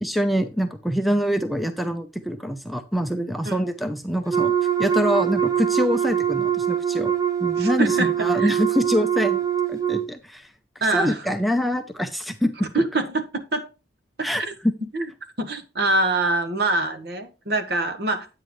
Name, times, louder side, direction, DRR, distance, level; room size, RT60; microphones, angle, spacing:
voice 1, 0.0-4.5 4.8-7.1 7.4-9.4 9.7-10.5 10.8-12.7 14.2-14.7, equal, ahead, 8 dB, 0.6 m, -25 dB
Wind instrument woodwind instrument, 4.3-10.1, right 9 dB, 20° right, 1.1 m, -23 dB
voice 2, 7.6-8.5 10.8-11.3 12.7-13.7 14.2-14.5 14.9-15.1 15.4-18.3, right 2 dB, 60° right, 9 dB, 1.3 m, -25 dB
8.8 x 7.4 x 3.1 m, 0.30 s
head